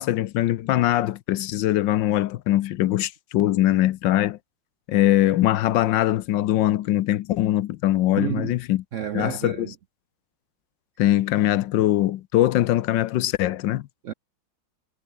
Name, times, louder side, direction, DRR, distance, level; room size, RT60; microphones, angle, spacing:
voice 1, 0.0-4.4 4.9-8.8 9.1-9.7 11.0-13.9, left 14 dB, 70° left, 1.3 m, -22 dB
voice 2, 8.2-8.6 8.9-9.7 14.0-14.1, right 10 dB, 80° right, 0.7 m, -30 dB
omnidirectional pair, 2.3 m